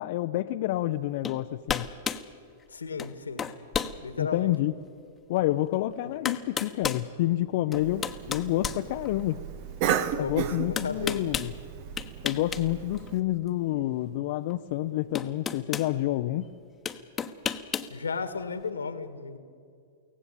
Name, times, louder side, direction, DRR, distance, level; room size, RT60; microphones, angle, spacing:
voice 1, 0.0-1.9 4.2-4.7 5.3-9.4 10.2-11.5 12.2-16.5, left 15 dB, 55° left, 7 dB, 0.7 m, -28 dB
sound 1, 1.2-1.4 1.7-2.3 3.0-3.1 3.4-4.0 4.5-4.6 5.7-5.8 6.3-7.1 7.7-9.4 10.8-11.5 12.0-12.6 12.9-13.1 14.5-14.6 15.2-15.9 16.9-17.9, left 7 dB, 20° left, 1.2 m, -32 dB
voice 2, 2.7-3.5 4.0-4.5 10.2-11.3 17.9-19.4, left 5 dB, 85° left, 11 dB, 1.8 m, -34 dB
Cough, 7.7-13.2, right 9 dB, 50° right, 1.2 m, -34 dB
24.0 x 17.0 x 8.7 m, 2.3 s
hypercardioid pair, 105°, 0 cm